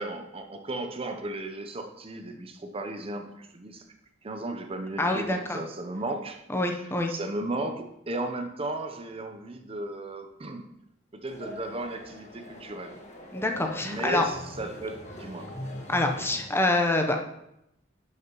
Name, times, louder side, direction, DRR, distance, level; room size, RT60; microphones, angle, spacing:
voice 1, 0.0-3.8 4.2-6.4 6.8-10.7 11.1-13.0 13.8-15.5, right 2 dB, 30° right, 6 dB, 0.7 m, -35 dB
voice 2, 5.0-5.6 6.5-7.1 13.3-14.2 15.9-17.2, left 2 dB, 15° left, 3 dB, 0.7 m, -26 dB
sound 1, 11.3-16.4, left 1 dB, 40° left, 1.5 m, -41 dB
10.5 x 6.6 x 3.0 m, 0.81 s
head